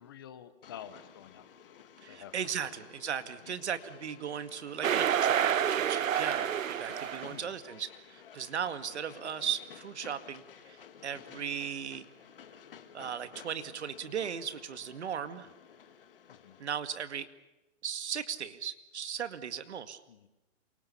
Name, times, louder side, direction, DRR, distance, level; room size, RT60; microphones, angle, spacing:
voice 1, 0.0-2.8 3.4-3.6 7.3-7.6 15.4-15.5 16.3-16.6 20.1-20.3, left 9 dB, 15° left, 11 dB, 1.0 m, -50 dB
Train, 0.6-16.8, left 8 dB, 45° left, 2.1 m, -54 dB
voice 2, 2.0-10.8 11.0-12.1 12.9-15.5 16.6-17.3 17.8-20.0, right 8 dB, 55° right, 11 dB, 2.1 m, -37 dB
sound 1, 4.8-7.4, right 9 dB, 80° right, 1.1 m, -28 dB
28.0 x 24.5 x 7.1 m, 1.0 s
hypercardioid pair, 180°, 39 cm